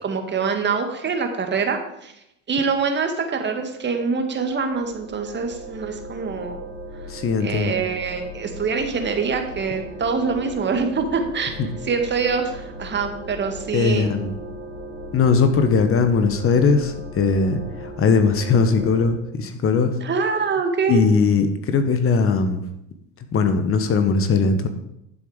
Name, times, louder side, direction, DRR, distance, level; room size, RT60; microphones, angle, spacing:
voice 1, 0.0-2.1 2.5-6.6 7.4-11.5 11.8-14.2 20.0-21.0, right 5 dB, 30° right, 5 dB, 2.0 m, -24 dB
sound 1, 4.3-19.1, right 1 dB, 65° right, 4.5 m, -37 dB
voice 2, 7.1-7.7 11.6-11.7 13.7-14.3 15.1-20.0 20.9-22.6 23.3-24.7, left 5 dB, 35° left, 8 dB, 1.4 m, -19 dB
11.0 x 7.1 x 5.1 m, 0.81 s
hypercardioid pair, 85°, 38 cm